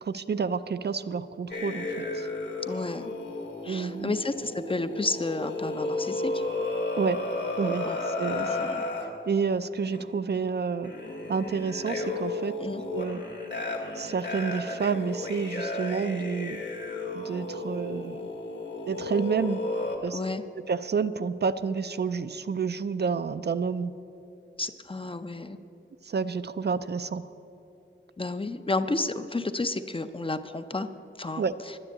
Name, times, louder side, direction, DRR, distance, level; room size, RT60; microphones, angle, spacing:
voice 1, 0.0-2.3 3.7-4.1 7.0-7.2 7.6-8.7 9.3-10.9 11.3-12.5 12.9-13.2 13.9-16.7 17.1-18.3 18.9-19.6 20.0-20.2 20.5-24.0 26.0-27.3 31.4-31.6, right 5 dB, 55° right, 12 dB, 0.4 m, -29 dB
sound 1, 1.5-9.1 9.9-10.2 10.8-20.0, left 2 dB, 60° left, 1.9 m, -33 dB
voice 2, 2.7-3.1 3.6-6.4 7.8-8.0 8.5-8.8 12.6-12.8 20.1-20.4 24.6-25.6 28.2-30.9 31.2-31.4, left 2 dB, 25° left, 10 dB, 0.5 m, -31 dB
10.5 x 9.9 x 8.2 m, 2.7 s
wide cardioid pair, 95°, 20 cm